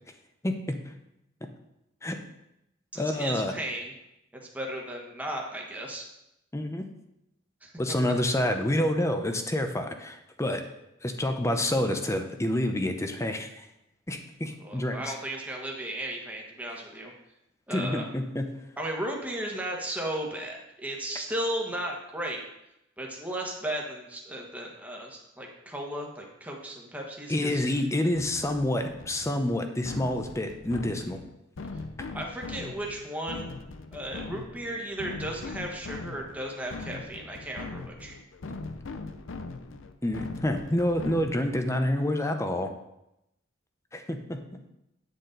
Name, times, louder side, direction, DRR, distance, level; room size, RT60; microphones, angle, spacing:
voice 1, 0.4-0.8 2.0-2.2 3.0-3.5 6.5-6.9 7.8-10.6 11.0-13.7 14.1-15.1 17.7-18.5 27.3-31.2 38.5-38.6 40.0-42.7 43.9-44.4, left 1 dB, 15° left, 6 dB, 0.7 m, -28 dB
voice 2, 2.9-3.9 4.4-6.1 7.6-8.0 14.6-17.1 17.7-18.1 18.8-22.4 23.0-27.6 32.1-33.5 33.9-38.2, right 1 dB, 5° right, -1 dB, 1.3 m, -35 dB
sound 1, 28.1-41.6, left 3 dB, 65° left, 0.6 m, -41 dB
9.5 x 6.7 x 3.9 m, 0.87 s
head